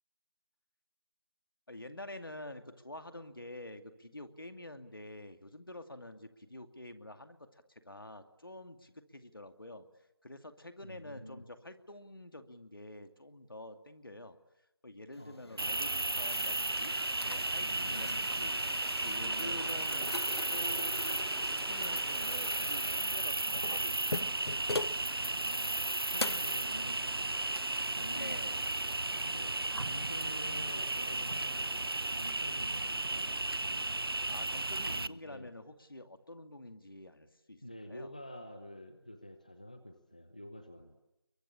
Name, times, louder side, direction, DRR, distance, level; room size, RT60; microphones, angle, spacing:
voice 1, 1.7-9.9 10.2-14.4 14.8-17.0 17.2-18.6 19.0-20.1 20.5-21.2 21.5-24.4 28.1-28.6 34.3-38.1, left 1 dB, 60° left, 8 dB, 2.5 m, -48 dB
voice 2, 10.8-11.4 15.2-15.8 17.6-18.3 19.2-19.8 25.2-25.8 26.1-27.5 27.9-28.4 29.2-33.9 34.8-35.5 37.6-41.0, equal, 20° left, 9 dB, 0.9 m, -48 dB
sound 1, 15.2-25.0 25.5-25.6 26.2-26.6, left 2 dB, 85° left, 0.9 m, -42 dB
Cricket, 15.6-35.1, right 2 dB, 70° right, 0.9 m, -34 dB
29.0 x 23.5 x 8.7 m, 0.92 s
figure-of-eight pair, 175°, 13 cm